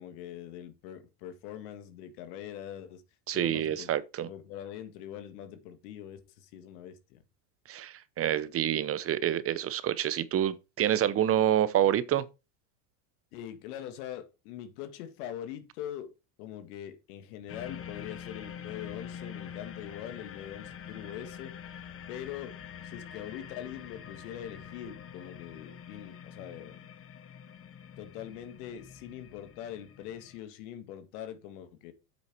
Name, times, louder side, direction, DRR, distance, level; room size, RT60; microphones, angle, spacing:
voice 1, 0.0-3.0 3.3-3.9 4.2-7.2 13.3-21.7 22.1-22.6 22.8-26.8 28.0-31.9, left 10 dB, 70° left, 1.9 m, -43 dB
voice 2, 3.3-4.3 7.7-12.3, right 11 dB, 30° right, 0.8 m, -27 dB
sound 1, 17.5-30.4, left 8 dB, 30° left, 1.2 m, -45 dB
8.3 x 6.1 x 4.5 m
supercardioid pair, 115°, 47 cm